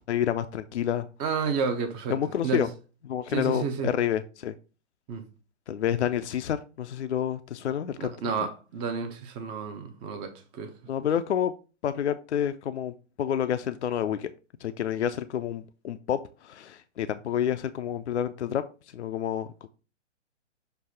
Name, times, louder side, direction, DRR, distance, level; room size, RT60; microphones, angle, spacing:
voice 1, 0.0-1.1 2.1-2.7 3.0-4.5 5.7-8.1 10.9-11.5 11.8-14.3 14.6-18.6 18.9-19.7, left 9 dB, 65° left, 0.5 m, -29 dB
voice 2, 1.2-2.2 2.4-2.7 3.3-3.9 5.1-5.3 8.0-10.7, right 5 dB, 15° right, 0.5 m, -31 dB
6.7 x 2.7 x 5.3 m
figure-of-eight pair, 120°, 36 cm